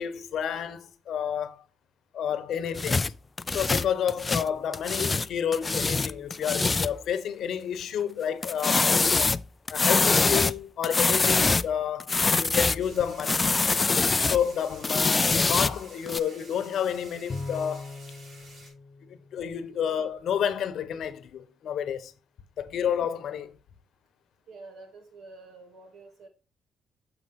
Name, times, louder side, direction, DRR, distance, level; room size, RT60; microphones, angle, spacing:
voice 1, 0.0-1.6 2.1-3.1 3.5-9.3 9.7-13.5 14.3-18.0 19.3-22.1 22.6-23.5, left 8 dB, 70° left, 0.9 m, -30 dB
sound 1, 2.8-5.3 5.5-7.0 8.4-10.6 10.8-11.7 12.0-12.9 13.2-14.4 14.8-16.2, left 3 dB, 25° left, 0.3 m, -24 dB
sound 2, 12.8-18.7, right 2 dB, 55° right, 4.3 m, -50 dB
Bowed string instrument, 17.3-19.9, left 3 dB, 50° left, 0.8 m, -40 dB
voice 2, 24.5-26.3, right 3 dB, 80° right, 2.4 m, -48 dB
6.9 x 5.9 x 3.7 m
cardioid pair, 90°, 0 cm